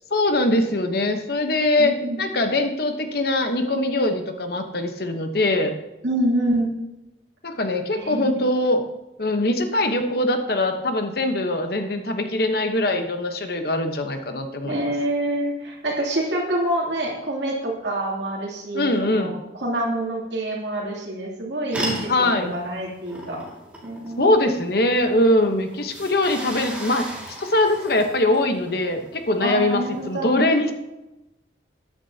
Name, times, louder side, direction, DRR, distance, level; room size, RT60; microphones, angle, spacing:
voice 1, 0.1-5.7 7.4-8.8 9.2-14.8 18.7-19.4 22.1-22.5 24.2-30.7, left 1 dB, 55° left, 6 dB, 1.0 m, -22 dB
voice 2, 1.8-2.2 6.0-6.7 8.0-8.4 14.6-23.4 23.8-24.4 29.4-30.3, right 1 dB, 70° right, -2 dB, 2.9 m, -26 dB
sound 1, 21.7-30.2, right 1 dB, 5° right, 2.1 m, -36 dB
13.5 x 9.9 x 2.8 m, 0.97 s
head